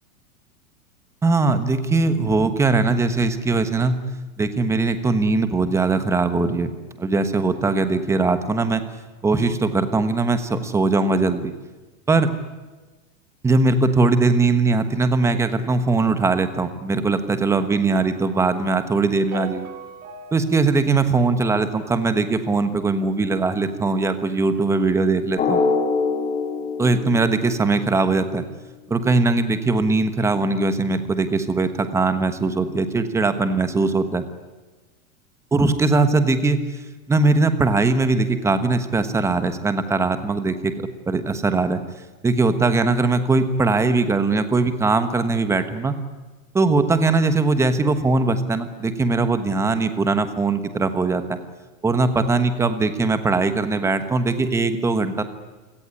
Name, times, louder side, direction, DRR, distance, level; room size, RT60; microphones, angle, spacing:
voice 1, 1.2-4.0 4.4-6.7 7.0-8.8 9.2-11.5 12.1-12.3 13.4-19.7 20.3-25.6 26.8-28.4 28.9-34.2 35.5-36.6 37.1-40.7 41.1-41.8 42.2-45.9 46.5-51.4 51.8-55.2, right 3 dB, 5° right, 10 dB, 1.2 m, -20 dB
sound 1, 17.9-22.2, right 8 dB, 75° right, 4.4 m, -40 dB
Drum, 25.4-28.0, left 4 dB, 20° left, 3.4 m, -24 dB
28.5 x 17.5 x 9.9 m, 1.2 s
supercardioid pair, 165°, 41 cm